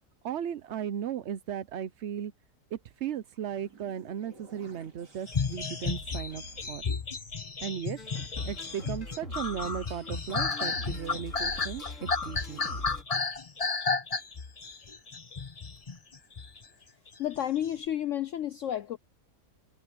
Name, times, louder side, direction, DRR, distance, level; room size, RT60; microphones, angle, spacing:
voice 1, 0.2-2.3 2.7-6.8 7.6-8.0 8.5-12.6, right 9 dB, 60° right, 0.8 m, -36 dB
sound 1, 3.1-8.5, right 2 dB, 85° right, 4.4 m, -54 dB
sound 2, 5.3-16.6 17.3-17.7, left 4 dB, 30° left, 0.8 m, -33 dB
sound 3, 8.0-13.0, left 2 dB, 45° left, 3.9 m, -42 dB
voice 2, 16.9-19.0, left 11 dB, 65° left, 0.8 m, -32 dB
omnidirectional pair, 1.8 m